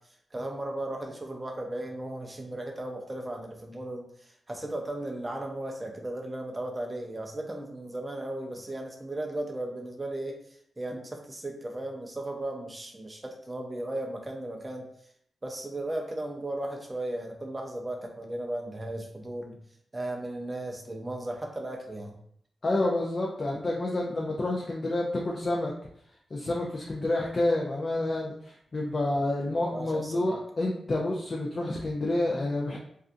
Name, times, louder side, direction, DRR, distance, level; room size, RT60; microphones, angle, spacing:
voice 1, 0.3-4.0 4.5-10.4 10.8-14.9 15.4-19.6 19.9-22.2 29.7-30.3, right 1 dB, 20° right, 1 dB, 0.5 m, -36 dB
voice 2, 22.6-25.7 26.3-32.8, left 2 dB, 35° left, -3 dB, 0.4 m, -29 dB
2.5 x 2.3 x 2.5 m, 0.67 s
wide cardioid pair, 120°, 0 cm